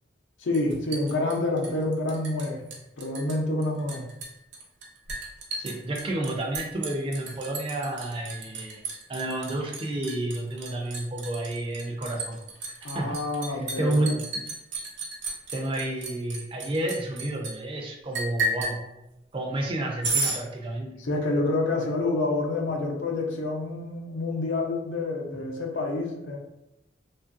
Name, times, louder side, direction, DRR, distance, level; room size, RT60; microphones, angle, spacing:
voice 1, 0.4-2.6 3.0-4.0 12.8-14.2 21.0-26.4, left 2 dB, 80° left, 1 dB, 0.5 m, -28 dB
Liquid, 0.5-2.5 2.7-3.4 3.6-17.5 18.1-18.8 20.0-20.4, right 3 dB, 70° right, 0.6 m, -33 dB
voice 2, 5.5-8.8 9.1-12.4 12.9-13.2 13.5-14.2 15.5-18.9 19.3-20.9 25.3-25.4, right 1 dB, 25° right, 1 dB, 0.4 m, -30 dB
2.9 x 2.5 x 2.4 m, 0.91 s
head